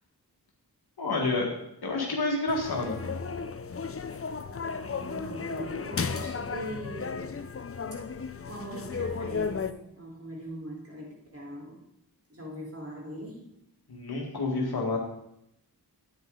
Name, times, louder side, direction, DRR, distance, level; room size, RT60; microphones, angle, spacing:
voice 1, 1.0-1.5 1.8-3.0 13.9-15.0, left 3 dB, 85° left, -1 dB, 1.8 m, -29 dB
sound 1, 2.5-9.7, left 5 dB, 40° left, 0.6 m, -34 dB
voice 2, 4.5-7.4 7.9-8.0 8.5-11.8 12.3-13.5, right 1 dB, 40° right, -3 dB, 4.0 m, -41 dB
9.4 x 9.2 x 3.8 m, 0.79 s
cardioid pair, 40°, 37 cm